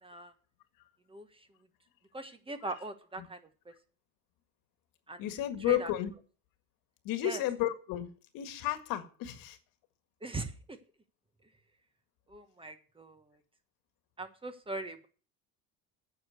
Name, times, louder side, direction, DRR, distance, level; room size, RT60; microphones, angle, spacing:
voice 1, 0.0-0.3 1.1-1.3 2.1-3.4 5.1-5.2 5.7-5.9 7.2-7.4 10.2-10.8 12.3-13.2 14.2-15.1, right 3 dB, 15° right, 1.2 m, -40 dB
voice 2, 5.2-6.1 7.0-9.6, left 13 dB, 65° left, 1.8 m, -33 dB
9.5 x 6.5 x 7.9 m
supercardioid pair, 115°, 36 cm